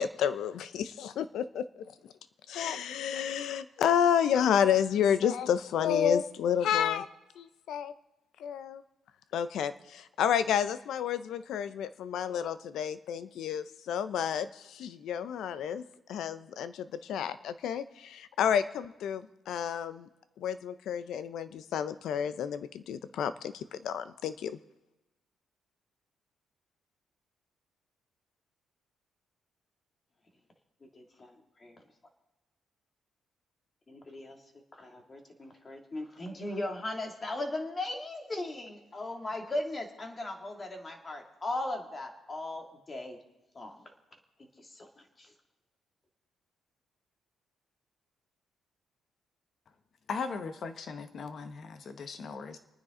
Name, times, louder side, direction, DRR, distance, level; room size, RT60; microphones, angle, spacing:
voice 1, 0.0-1.7 2.5-7.1 7.4-7.9 8.4-8.8 9.3-15.8 16.1-20.1 20.4-24.6, left 8 dB, 75° left, 13 dB, 0.7 m, -30 dB
voice 2, 30.9-31.8 33.9-34.4 34.7-43.2 43.5-43.8 44.6-45.3, left 2 dB, 30° left, 3 dB, 2.5 m, -38 dB
voice 3, 50.1-52.6, left 5 dB, 55° left, 9 dB, 1.3 m, -38 dB
28.5 x 9.7 x 3.9 m, 1.1 s
cardioid pair, 90°, 0 cm